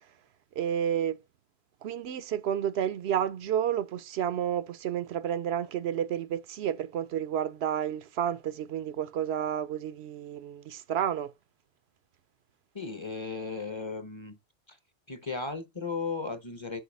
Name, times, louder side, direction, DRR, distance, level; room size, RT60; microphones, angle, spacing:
voice 1, 0.6-1.2 1.8-11.3, right 9 dB, 80° right, 0.9 m, -30 dB
voice 2, 12.7-14.4 14.7-14.8 15.1-16.8, left 4 dB, 30° left, 0.8 m, -35 dB
7.5 x 2.7 x 5.3 m
omnidirectional pair, 1.1 m